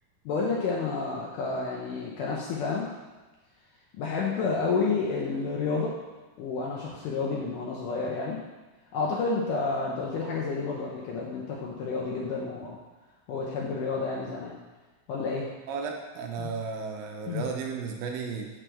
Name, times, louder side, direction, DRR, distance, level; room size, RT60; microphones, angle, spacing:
voice 1, 0.3-2.9 4.0-6.0 6.4-8.4 8.9-12.8 13.3-14.5 15.1-15.5 16.4-16.5 17.3-17.5, left 4 dB, 75° left, -3 dB, 2.2 m, -30 dB
voice 2, 15.7-18.5, right 5 dB, 85° right, 2 dB, 2.5 m, -34 dB
7.4 x 6.1 x 3.4 m, 1.2 s
omnidirectional pair, 4.1 m